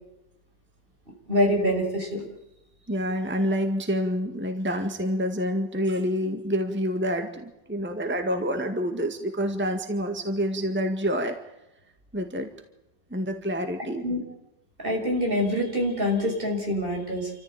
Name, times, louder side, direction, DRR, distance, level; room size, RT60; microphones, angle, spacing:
voice 1, 1.3-2.2 14.0-14.2 14.8-17.3, equal, 30° right, 1 dB, 6.3 m, -25 dB
voice 2, 2.9-11.4 12.1-12.5 13.1-14.1, equal, 5° right, 5 dB, 1.9 m, -27 dB
28.0 x 14.5 x 9.1 m, 0.92 s
omnidirectional pair, 1.8 m